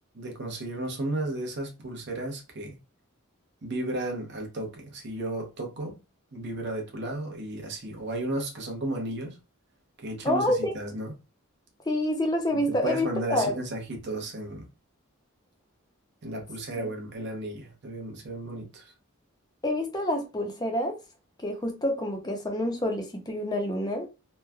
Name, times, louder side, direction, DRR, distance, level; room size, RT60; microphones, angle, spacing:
voice 1, 0.1-2.8 3.6-5.9 6.3-9.4 10.0-11.1 12.5-14.6 16.2-18.9, right 1 dB, 50° right, 0.8 m, -34 dB
voice 2, 10.2-10.7 11.9-13.5 16.8-16.9 19.6-21.0 21.4-24.1, left 1 dB, 20° left, 0.6 m, -27 dB
3.1 x 2.2 x 2.3 m
head